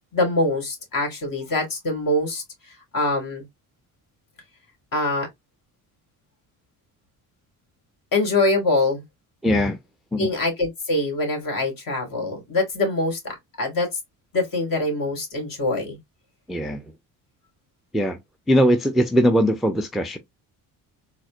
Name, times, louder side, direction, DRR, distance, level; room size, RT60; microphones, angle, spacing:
voice 1, 0.1-2.4 2.9-3.4 4.9-5.3 8.1-9.0 10.2-13.9 14.3-16.0, left 2 dB, 50° left, 2.1 m, -24 dB
voice 2, 9.4-9.8 10.1-10.3 16.5-16.8 17.9-18.2 18.5-20.2, equal, ahead, 0.4 m, -20 dB
4.0 x 2.1 x 2.5 m
supercardioid pair, 70°, 42 cm